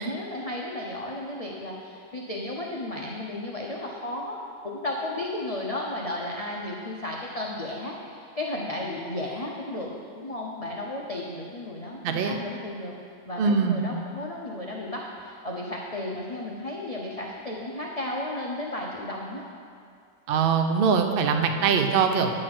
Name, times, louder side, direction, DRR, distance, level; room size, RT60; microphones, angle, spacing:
voice 1, 0.0-12.9 13.3-19.4 21.7-21.9, left 1 dB, 35° left, -3 dB, 0.5 m, -34 dB
voice 2, 12.0-12.3 13.4-13.8 20.3-22.3, right 6 dB, 60° right, 5 dB, 0.6 m, -22 dB
9.8 x 6.5 x 5.9 m, 2.3 s
omnidirectional pair, 1.8 m